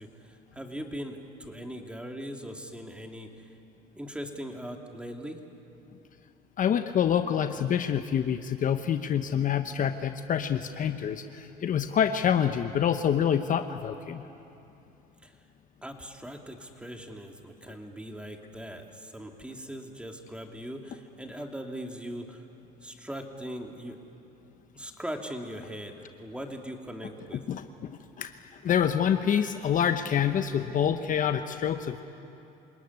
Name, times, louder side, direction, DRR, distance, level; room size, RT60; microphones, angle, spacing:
voice 1, 0.0-3.5 3.9-5.4 15.2-15.4 15.8-22.5 22.8-24.0 24.8-27.4, equal, 5° right, 3 dB, 2.8 m, -40 dB
voice 2, 6.6-14.3 27.5-32.0, left 8 dB, 45° left, 8 dB, 1.0 m, -27 dB
28.0 x 19.0 x 9.7 m, 2.9 s
supercardioid pair, 95°, 19 cm